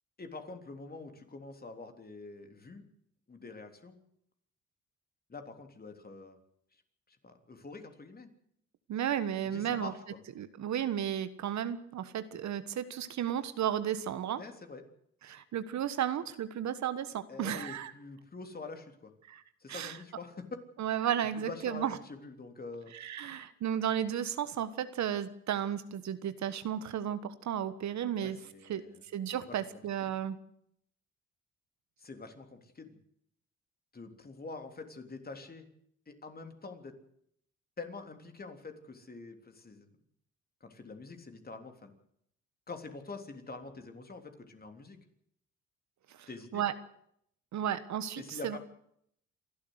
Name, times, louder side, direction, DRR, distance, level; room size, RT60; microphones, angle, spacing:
voice 1, 0.2-2.8 3.3-4.0 5.3-6.4 7.2-8.3 9.4-9.9 14.4-14.8 17.3-19.1 19.6-20.5 21.2-22.9 28.2-29.0 29.4-30.1 32.0-33.0 33.9-35.7 36.1-36.9 37.8-39.9 40.6-41.9 42.7-45.0 46.3-46.6 48.2-48.6, left 3 dB, 30° left, 6 dB, 3.4 m, -46 dB
voice 2, 8.9-9.9 10.4-14.4 15.2-17.9 19.3-19.4 19.7-20.0 20.8-22.0 22.9-28.4 28.7-28.8 29.1-30.4 46.2-46.7 47.5-48.6, right 9 dB, 65° right, 13 dB, 1.4 m, -33 dB
28.0 x 12.0 x 8.1 m, 0.71 s
cardioid pair, 90°, 30 cm